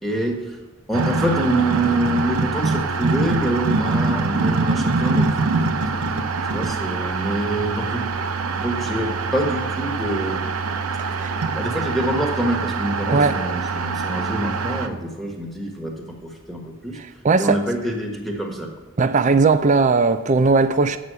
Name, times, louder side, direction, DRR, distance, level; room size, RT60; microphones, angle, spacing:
voice 1, 0.0-0.6 0.9-5.6 6.5-8.1 8.5-10.4 11.6-17.0 17.4-18.7, right 1 dB, ahead, 1.3 m, -25 dB
sound 1, 0.9-14.9, right 4 dB, 85° right, 0.8 m, -24 dB
voice 2, 17.2-17.6 19.0-21.0, right 4 dB, 35° right, 0.4 m, -18 dB
8.4 x 6.2 x 6.7 m
head